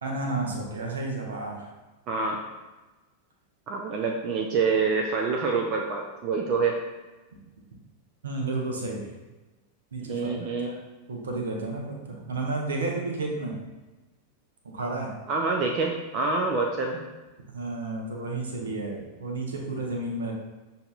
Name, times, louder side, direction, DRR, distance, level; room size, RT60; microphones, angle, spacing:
voice 1, 0.0-1.7 8.2-9.1 9.9-10.8 11.1-13.6 14.6-15.1 17.5-20.3, right 2 dB, 70° right, 0 dB, 0.8 m, -32 dB
voice 2, 2.1-2.4 3.7-6.8 10.1-10.7 15.3-17.0, right 4 dB, 35° right, 1 dB, 0.4 m, -26 dB
6.4 x 2.7 x 2.3 m, 1.2 s
figure-of-eight pair, 90°, 0 cm